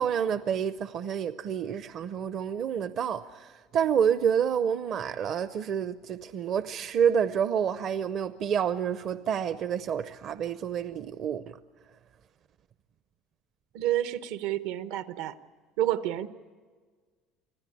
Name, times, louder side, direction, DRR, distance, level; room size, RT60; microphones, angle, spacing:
voice 1, 0.0-11.6, right 8 dB, 45° right, 12 dB, 0.6 m, -28 dB
voice 2, 13.7-15.3 15.8-16.3, right 13 dB, 75° right, 12 dB, 1.0 m, -29 dB
26.0 x 15.5 x 9.9 m, 1.6 s
cardioid pair, 140°, 0 cm